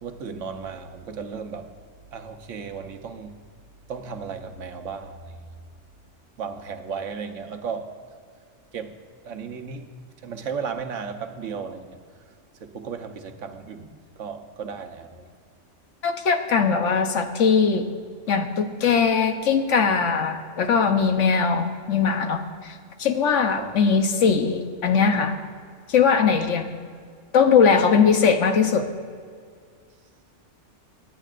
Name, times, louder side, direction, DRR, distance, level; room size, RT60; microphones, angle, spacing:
voice 1, 0.0-1.7 2.1-3.4 3.9-5.4 6.4-7.9 8.7-8.9 9.2-9.9 10.2-12.0 12.6-15.3 23.6-23.7, right 6 dB, 85° right, 7 dB, 1.2 m, -35 dB
voice 2, 16.0-17.9 18.3-25.4 25.9-26.8 27.3-28.9, left 6 dB, 80° left, 6 dB, 1.2 m, -20 dB
23.5 x 9.9 x 2.5 m, 2.1 s
omnidirectional pair, 1.3 m